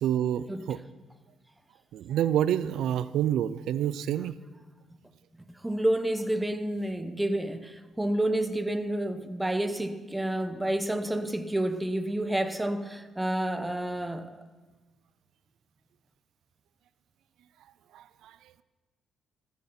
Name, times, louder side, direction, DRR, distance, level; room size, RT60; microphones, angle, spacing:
voice 1, 0.0-0.8 1.9-4.3 17.9-18.0, right 10 dB, 80° right, 16 dB, 0.5 m, -27 dB
voice 2, 5.4-14.3, right 1 dB, 10° right, 9 dB, 1.2 m, -29 dB
19.0 x 14.5 x 4.4 m, 1.2 s
cardioid pair, 90°, 0 cm